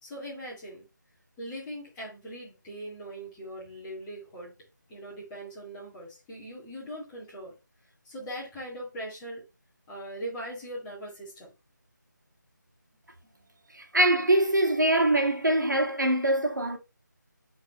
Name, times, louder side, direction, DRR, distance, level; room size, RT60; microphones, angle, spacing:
voice 1, 0.0-0.8 1.4-4.5 4.9-7.5 8.0-9.4 9.9-11.5, right 1 dB, 10° left, 2.0 m, -40 dB
voice 2, 13.9-16.8, right 1 dB, 70° right, 1.7 m, -23 dB
7.9 x 4.1 x 3.1 m
figure-of-eight pair, 160°, 10 cm